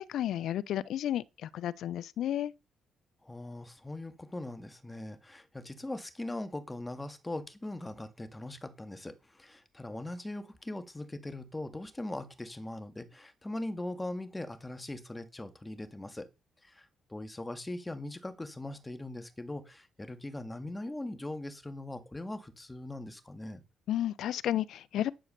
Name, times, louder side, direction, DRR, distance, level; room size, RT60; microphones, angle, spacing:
voice 1, 0.0-2.5 23.9-25.1, left 11 dB, 75° left, 0.7 m, -32 dB
voice 2, 3.2-16.3 16.6-23.6, left 1 dB, 15° left, 2.1 m, -40 dB
10.5 x 7.8 x 6.7 m
cardioid pair, 90°, 0 cm